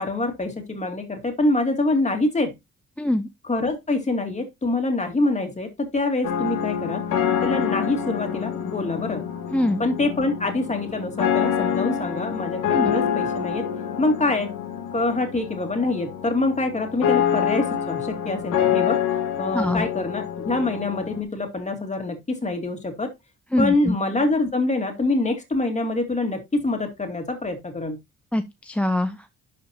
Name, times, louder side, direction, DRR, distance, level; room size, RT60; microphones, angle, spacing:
voice 1, 0.0-2.5 3.4-7.0 7.4-9.2 9.8-13.7 14.0-14.5 14.9-19.0 19.4-23.1 23.6-28.0, left 2 dB, 25° left, 2.5 m, -25 dB
voice 2, 3.0-3.3 9.5-9.8 12.7-12.9 19.5-19.9 23.5-24.0 28.3-29.2, left 1 dB, 5° left, 0.5 m, -23 dB
sound 1, 6.2-21.2, left 8 dB, 75° left, 1.6 m, -26 dB
11.5 x 5.0 x 2.8 m
cardioid pair, 90°, 30 cm